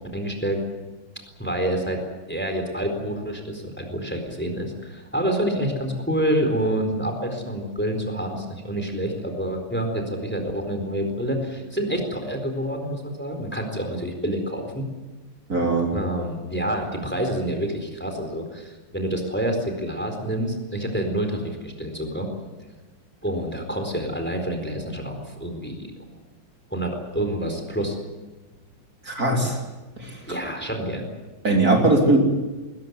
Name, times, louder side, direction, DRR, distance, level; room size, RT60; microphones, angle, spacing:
voice 1, 0.1-0.6 1.4-2.0 2.3-14.8 15.9-22.3 23.2-25.9 26.7-28.0 30.3-31.0, right 1 dB, 5° left, 5 dB, 4.1 m, -27 dB
voice 2, 15.5-15.9 29.1-29.6 30.0-30.2 31.4-32.2, right 2 dB, 45° right, 0 dB, 3.8 m, -20 dB
21.0 x 20.0 x 9.5 m, 1.2 s
omnidirectional pair, 2.2 m